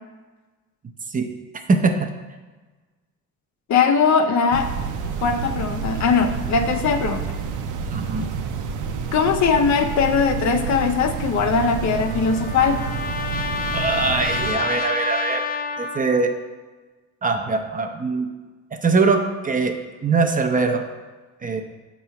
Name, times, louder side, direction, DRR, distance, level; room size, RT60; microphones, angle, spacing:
voice 1, 1.7-2.1 7.9-8.3 13.7-15.4 15.8-16.3 17.2-18.3 18.8-19.7 20.0-20.8 21.4-21.6, right 4 dB, 25° right, 5 dB, 0.6 m, -21 dB
voice 2, 3.7-4.7 5.2-7.2 9.1-12.8, left 5 dB, 65° left, 6 dB, 0.7 m, -20 dB
sound 1, 4.5-14.5, right 5 dB, 85° right, 0.6 m, -29 dB
Trumpet, 11.6-16.4, left 4 dB, 30° left, 0.5 m, -29 dB
6.7 x 3.1 x 5.6 m, 1.3 s
cardioid pair, 90°, 30 cm